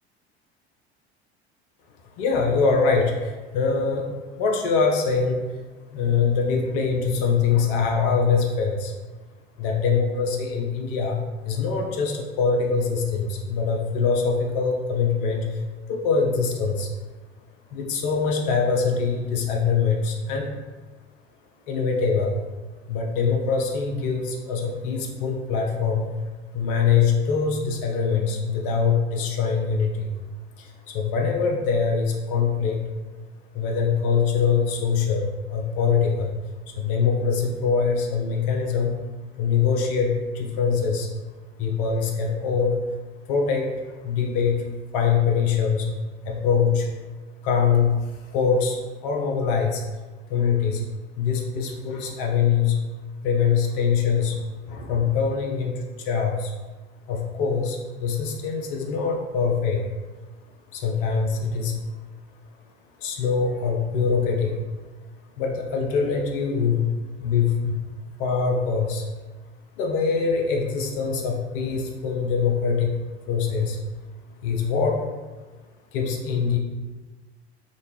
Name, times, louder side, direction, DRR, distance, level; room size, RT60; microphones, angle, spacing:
voice 1, 2.2-4.1 4.4-5.4 5.9-8.9 9.6-11.2 11.5-15.6 15.9-16.9 17.7-20.5 21.7-22.4 22.9-26.1 26.5-30.1 30.6-32.8 33.5-36.3 36.7-38.9 39.4-41.1 41.6-42.8 43.3-44.6 44.9-45.9 46.3-46.9 47.4-48.0 48.3-49.8 50.3-50.8 51.2-52.8 53.2-56.5 57.1-59.8 60.7-61.8 63.0-64.5 65.4-66.9 67.2-67.8 68.2-69.1 69.8-73.0 73.3-73.8 74.4-75.0 75.9-76.6, left 5 dB, 55° left, 1 dB, 0.5 m, -23 dB
2.5 x 2.2 x 3.1 m, 1.2 s
figure-of-eight pair, 65°, 33 cm